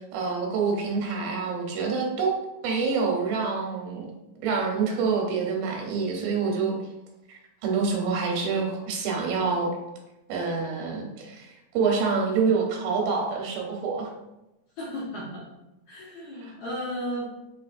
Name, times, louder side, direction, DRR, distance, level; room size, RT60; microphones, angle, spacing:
voice 1, 0.1-4.1 4.4-6.8 7.3-9.7 10.3-14.1 16.4-16.5, right 5 dB, 90° right, 1 dB, 2.6 m, -27 dB
voice 2, 14.8-15.4 15.9-17.3, equal, 70° left, -7 dB, 2.0 m, -34 dB
6.3 x 2.8 x 2.5 m, 0.95 s
omnidirectional pair, 3.9 m